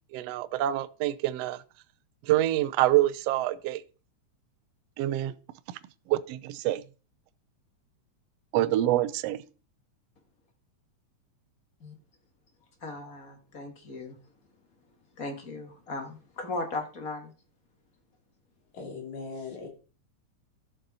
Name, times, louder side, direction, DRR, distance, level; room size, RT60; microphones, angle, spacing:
voice 1, 0.1-1.6 2.2-3.8 5.0-5.4 6.1-6.8 8.5-9.4, right 14 dB, 80° right, 1.5 m, -26 dB
voice 2, 12.8-14.2 15.2-17.3, left 2 dB, 35° left, 1.5 m, -37 dB
voice 3, 18.7-19.7, left 4 dB, 70° left, 4.1 m, -39 dB
13.0 x 6.7 x 4.1 m
omnidirectional pair, 3.5 m